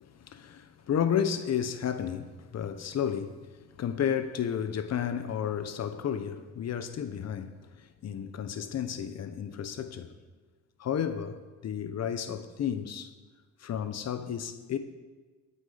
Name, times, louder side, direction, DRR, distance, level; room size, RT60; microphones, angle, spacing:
voice 1, 0.0-3.5 3.8-10.1 10.8-13.1 13.6-14.8, left 8 dB, 60° left, 1.1 m, -32 dB
18.0 x 8.8 x 5.1 m
cardioid pair, 90°, 30 cm